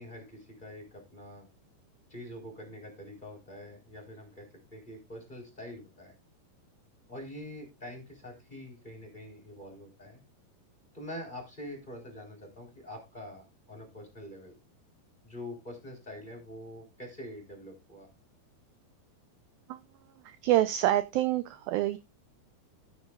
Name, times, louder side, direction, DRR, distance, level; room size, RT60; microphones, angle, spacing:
voice 1, 0.0-1.5 2.1-4.5 4.7-6.1 7.1-10.2 10.9-14.5 15.2-18.1, left 1 dB, 10° left, 2 dB, 3.7 m, -45 dB
voice 2, 20.2-22.0, right 14 dB, 80° right, 12 dB, 2.1 m, -27 dB
15.0 x 9.4 x 2.4 m, 0.24 s
omnidirectional pair, 4.9 m